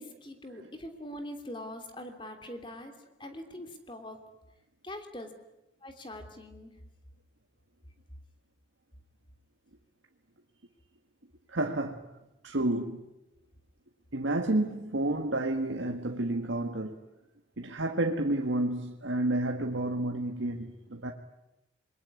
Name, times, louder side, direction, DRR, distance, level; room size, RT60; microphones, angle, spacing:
voice 1, 0.0-2.9 3.2-4.2 4.8-5.3 5.8-6.7, left 1 dB, 25° left, 3.1 m, -43 dB
voice 2, 11.5-12.2 12.4-13.1 14.1-17.0 17.6-21.1, right 1 dB, 90° right, 1.7 m, -30 dB
27.0 x 22.0 x 9.6 m
head